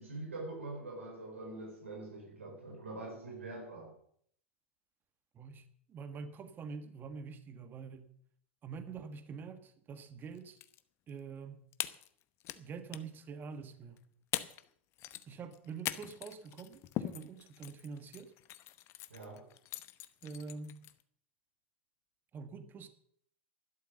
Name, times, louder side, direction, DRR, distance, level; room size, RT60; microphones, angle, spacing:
voice 1, 0.0-3.9 19.1-19.5, right 2 dB, 85° right, 4.4 m, -44 dB
voice 2, 5.3-8.1 8.6-10.6 11.1-11.6 12.5-14.0 15.3-18.3 20.2-20.8 22.3-22.9, right 5 dB, 30° right, 1.4 m, -46 dB
sound 1, 10.3-10.8 11.1-11.2 11.7-12.6 12.9-13.2 14.0-14.1 14.3-14.7 14.9-21.0, left 13 dB, 40° left, 0.9 m, -42 dB
12.0 x 12.0 x 6.7 m
figure-of-eight pair, 90°, 7 cm